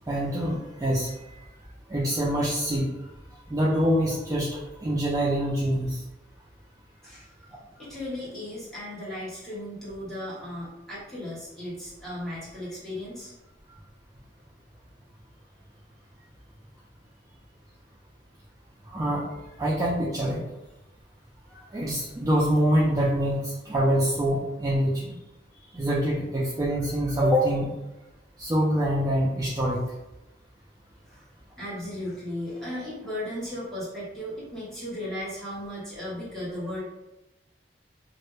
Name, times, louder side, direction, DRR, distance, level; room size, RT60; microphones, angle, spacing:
voice 1, 0.1-1.1 1.9-2.9 3.5-6.0 18.9-19.2 19.6-20.4 21.7-25.1 25.7-27.7 28.4-29.8, equal, 20° right, -6 dB, 0.3 m, -25 dB
voice 2, 7.8-13.3 31.1-31.3 31.6-36.8, left 1 dB, 5° left, -9 dB, 0.9 m, -36 dB
2.1 x 2.0 x 3.0 m, 0.96 s
head